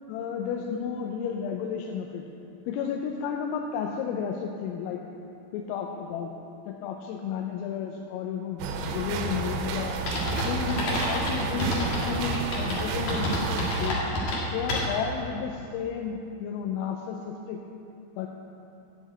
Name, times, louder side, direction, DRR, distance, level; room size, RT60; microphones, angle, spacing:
voice 1, 0.1-2.3 2.7-5.0 5.5-6.4 6.6-10.0 10.5-14.0 14.5-17.6 18.2-18.3, left 7 dB, 90° left, 2 dB, 3.3 m, -32 dB
sound 1, 8.6-13.9, right 4 dB, 85° right, 3.4 m, -31 dB
sound 2, 10.1-15.1, left 1 dB, 65° left, 1.8 m, -29 dB
10.0 x 5.5 x 8.3 m, 2.7 s
omnidirectional pair, 5.8 m